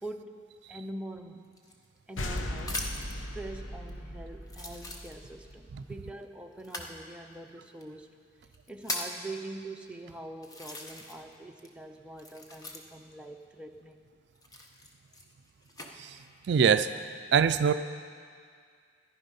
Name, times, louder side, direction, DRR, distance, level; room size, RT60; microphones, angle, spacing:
voice 1, 0.0-1.5 2.1-2.8 3.1-8.1 8.7-14.0, right 2 dB, 5° right, 3 dB, 0.6 m, -44 dB
sound 1, 1.5-3.2 3.9-4.0 4.5-5.5 6.6-6.9 7.8-7.9 8.4-9.2 9.9-10.0 10.4-11.3 11.6-13.1 14.3-15.9 16.6-17.0, left 2 dB, 20° left, 0.9 m, -40 dB
sound 2, 2.2-5.6, left 1 dB, 80° left, 0.9 m, -38 dB
voice 2, 16.5-16.9 17.3-17.7, right 7 dB, 60° right, 11 dB, 0.3 m, -22 dB
14.0 x 11.0 x 5.4 m, 2.1 s
head